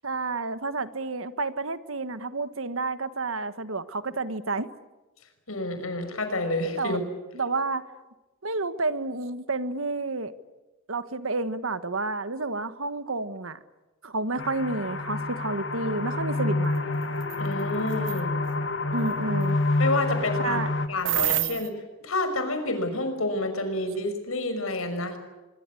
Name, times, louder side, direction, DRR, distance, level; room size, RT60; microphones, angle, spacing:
voice 1, 0.0-4.7 6.8-7.0 7.3-7.8 8.4-10.3 10.9-13.6 14.0-17.0 18.9-19.6 20.4-20.7, right 3 dB, 75° right, 13 dB, 1.5 m, -30 dB
voice 2, 5.5-7.0 17.4-18.3 19.8-20.6 20.9-21.7 22.0-25.2, left 2 dB, 85° left, 7 dB, 5.9 m, -29 dB
sound 1, 14.4-20.9, left 2 dB, 60° left, 2.1 m, -28 dB
sound 2, 17.2-17.4 17.9-18.2 21.0-21.7, right 15 dB, 60° right, 0.9 m, -26 dB
25.0 x 23.5 x 8.5 m, 1.2 s
head